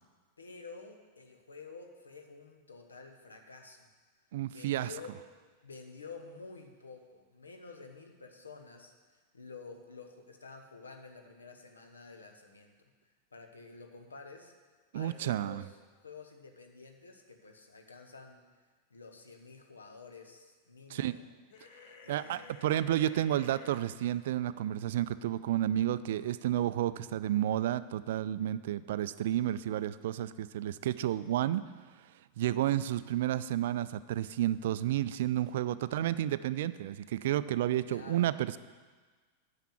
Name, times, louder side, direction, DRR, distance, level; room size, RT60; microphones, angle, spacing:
voice 1, 0.4-3.9 4.5-5.1 5.6-12.7 13.3-14.5 14.9-15.7 16.0-18.4 18.9-21.3 22.0-22.7 37.9-38.3, left 4 dB, 75° left, 4 dB, 1.1 m, -50 dB
voice 2, 4.3-4.9 14.9-15.6 20.9-21.2 22.1-31.6 32.4-38.6, right 12 dB, 55° right, 15 dB, 0.3 m, -31 dB
sound 1, 21.5-23.8, left 5 dB, 50° left, 1.0 m, -52 dB
9.1 x 5.8 x 7.3 m, 1.4 s
figure-of-eight pair, 90°, 0 cm